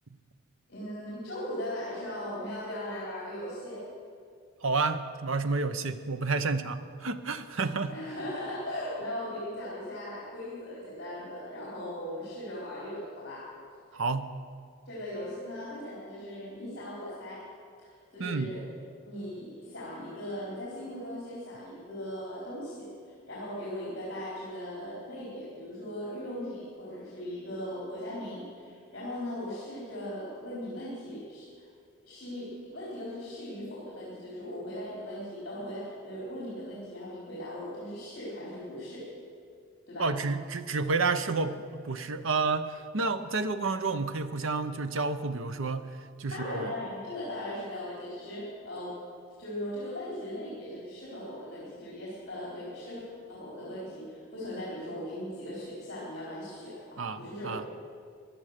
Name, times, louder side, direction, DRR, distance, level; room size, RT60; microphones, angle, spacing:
voice 1, 0.7-3.8 7.9-13.5 14.9-17.5 17.8-18.7 19.0-22.9 23.3-31.6 32.0-39.1 39.9-40.2 46.3-49.0 49.4-57.7, left 1 dB, 50° left, -7 dB, 4.1 m, -38 dB
voice 2, 4.6-7.9 13.9-14.3 18.2-18.5 40.0-45.9 46.2-46.7 57.0-57.6, right 3 dB, 70° right, 10 dB, 0.8 m, -30 dB
16.5 x 11.0 x 6.7 m, 2.2 s
head